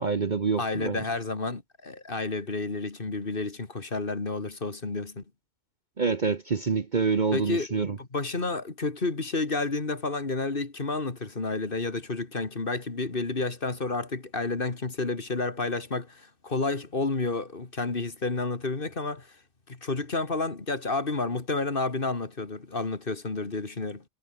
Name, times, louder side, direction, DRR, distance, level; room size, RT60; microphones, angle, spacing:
voice 1, 0.0-1.0 6.0-8.0, right 5 dB, 35° right, 1.0 m, -26 dB
voice 2, 0.6-5.2 7.3-19.3 19.7-24.0, left 3 dB, 40° left, 2.3 m, -30 dB
omnidirectional pair, 1.4 m